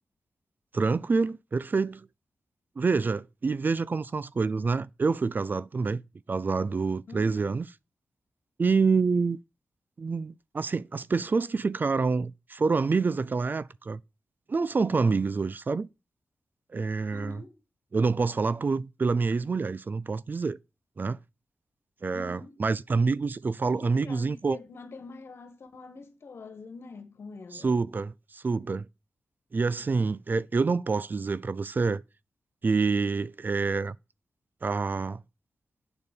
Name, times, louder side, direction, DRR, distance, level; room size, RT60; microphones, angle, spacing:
voice 1, 0.7-2.1 2.8-6.0 6.3-7.7 8.6-9.4 10.0-14.0 14.5-15.9 16.7-17.4 17.9-20.6 21.0-21.2 22.0-24.6 27.5-28.9 29.5-32.0 32.6-34.0 34.6-35.2, right 4 dB, 45° right, 0.4 m, -27 dB
voice 2, 7.1-7.4 17.1-17.6 22.1-22.6 23.8-27.8, left 4 dB, 70° left, 1.5 m, -45 dB
8.9 x 4.0 x 6.8 m
cardioid pair, 45°, 4 cm